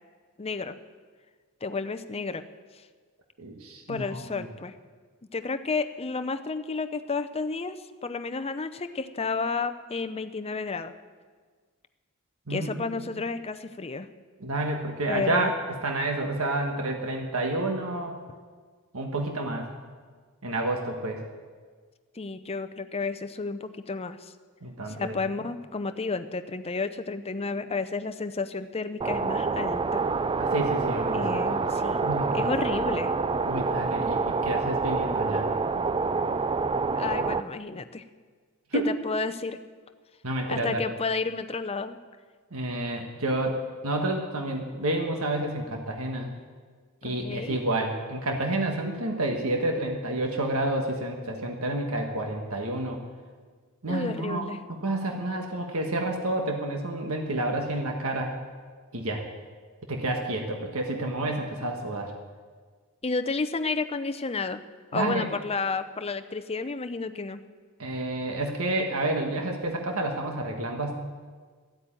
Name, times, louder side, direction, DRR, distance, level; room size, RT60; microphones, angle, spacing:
voice 1, 0.4-0.8 1.6-2.4 3.9-4.7 5.3-10.9 12.5-14.1 15.1-15.5 22.1-24.3 24.9-30.1 31.1-32.0 32.3-33.1 37.0-38.0 38.7-39.6 40.5-42.0 47.0-47.6 53.9-54.6 63.0-64.6 64.9-67.4, left 4 dB, 25° left, 10 dB, 0.6 m, -31 dB
voice 2, 3.4-4.4 12.5-13.2 14.4-18.2 18.9-19.7 20.4-21.2 24.6-25.2 30.4-31.2 31.5-31.6 32.0-32.5 33.4-35.6 38.7-38.9 40.2-40.9 42.5-46.3 47.0-53.0 53.8-58.3 58.9-59.2 59.9-62.1 64.9-65.3 67.8-70.9, right 1 dB, 65° right, 2 dB, 1.6 m, -29 dB
sound 1, 29.0-37.4, right 4 dB, 25° right, 0.4 m, -27 dB
13.5 x 8.5 x 9.1 m, 1.5 s
head